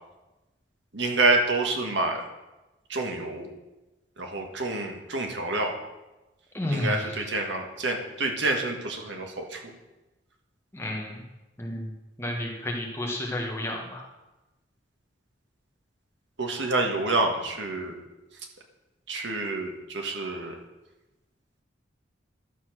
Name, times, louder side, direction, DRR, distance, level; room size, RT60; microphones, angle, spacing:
voice 1, 0.9-2.2 2.9-3.5 4.2-5.8 6.7-9.6 16.4-18.0 19.1-20.6, right 2 dB, 70° right, 3 dB, 1.6 m, -27 dB
voice 2, 6.5-7.0 10.7-11.2 11.6-11.9 12.2-14.0, left 1 dB, 15° left, -1 dB, 1.6 m, -31 dB
11.5 x 7.1 x 6.3 m, 1.0 s
head